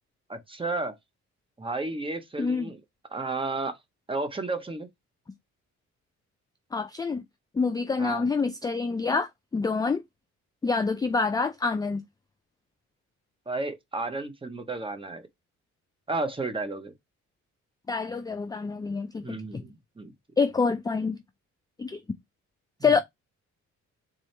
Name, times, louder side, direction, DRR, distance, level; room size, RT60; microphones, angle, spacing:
voice 1, 0.3-1.0 1.6-2.8 3.1-3.8 4.1-4.9 8.0-8.3 13.5-15.3 16.1-16.9 19.2-20.1 22.9-23.0, right 3 dB, 15° right, 0.8 m, -32 dB
voice 2, 2.4-2.7 6.7-7.2 7.5-10.0 10.6-12.0 17.9-19.6 20.4-21.2 21.8-22.0 22.8-23.0, left 4 dB, 15° left, 0.3 m, -27 dB
3.8 x 2.7 x 3.2 m
cardioid pair, 90°, 30 cm